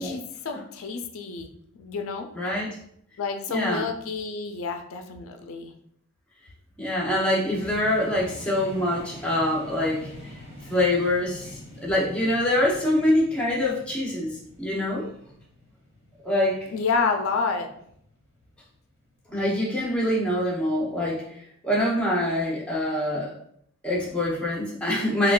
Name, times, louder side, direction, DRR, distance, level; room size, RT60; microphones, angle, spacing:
voice 1, 0.0-1.5 1.7-2.3 3.2-5.7 16.7-17.7, left 4 dB, 75° left, 5 dB, 0.4 m, -29 dB
voice 2, 2.3-2.8 3.5-3.9 6.8-10.1 10.7-15.1 16.2-16.7 19.3-23.4 23.8-25.3, left 1 dB, 5° left, -4 dB, 0.6 m, -25 dB
sound 1, 7.5-19.3, left 1 dB, 50° right, 1.4 m, -45 dB
3.6 x 2.3 x 2.3 m, 0.69 s
head